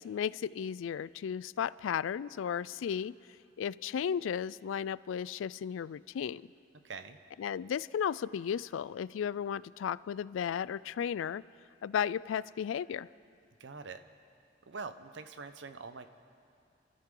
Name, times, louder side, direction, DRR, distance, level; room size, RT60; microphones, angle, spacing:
voice 1, 0.0-3.1 3.6-6.4 7.4-11.4 11.8-13.1, left 8 dB, 90° left, 20 dB, 0.3 m, -34 dB
voice 2, 6.8-7.2 13.6-14.1 14.7-16.1, right 4 dB, 65° right, 10 dB, 0.8 m, -44 dB
29.5 x 13.0 x 3.8 m, 2.5 s
head